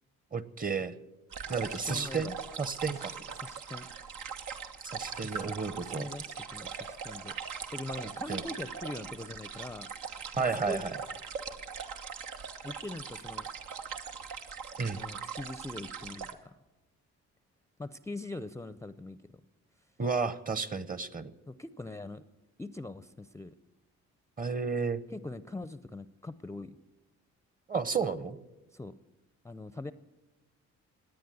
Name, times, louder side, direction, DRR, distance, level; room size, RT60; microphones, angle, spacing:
voice 1, 0.3-0.9 1.5-3.1 4.8-6.1 8.3-8.4 10.4-10.9 14.8-15.0 20.0-21.3 24.4-25.0 27.7-28.4, right 5 dB, 30° right, 16 dB, 0.9 m, -32 dB
sound 1, 1.3-16.3, right 6 dB, 90° right, 1.3 m, -41 dB
voice 2, 1.5-2.3 2.9-3.9 5.2-7.3 7.7-9.9 10.4-10.8 12.6-13.5 14.9-16.6 17.8-19.3 21.5-22.2 22.6-23.5 25.1-26.8 28.7-29.0 29.4-29.9, left 2 dB, 10° left, 14 dB, 0.5 m, -42 dB
17.5 x 10.0 x 7.7 m, 1.0 s
cardioid pair, 90°, 30 cm